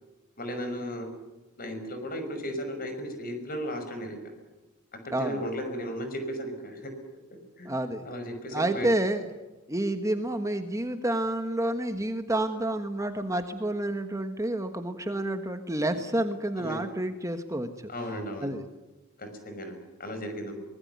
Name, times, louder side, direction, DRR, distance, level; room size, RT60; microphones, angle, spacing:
voice 1, 0.4-1.1 1.6-4.2 5.0-6.9 7.6-7.7 8.1-8.9 16.6-16.8 17.9-18.5 19.2-20.5, equal, 45° left, 7 dB, 5.7 m, -35 dB
voice 2, 5.1-5.4 7.6-8.0 8.5-9.2 9.7-17.7 18.4-18.6, right 1 dB, 15° right, 7 dB, 1.3 m, -29 dB
24.0 x 20.5 x 9.4 m, 1.1 s
head